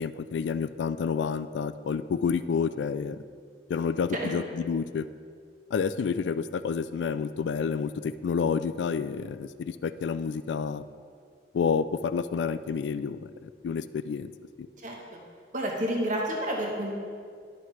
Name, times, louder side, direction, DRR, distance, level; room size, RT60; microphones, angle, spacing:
voice 1, 0.0-3.2 3.7-5.1 5.7-10.9 11.5-14.3 14.6-14.7, left 6 dB, 75° left, 13 dB, 0.3 m, -29 dB
voice 2, 14.8-15.2 15.5-16.9, right 1 dB, 45° right, 0 dB, 1.0 m, -30 dB
11.0 x 5.7 x 3.1 m, 2.1 s
head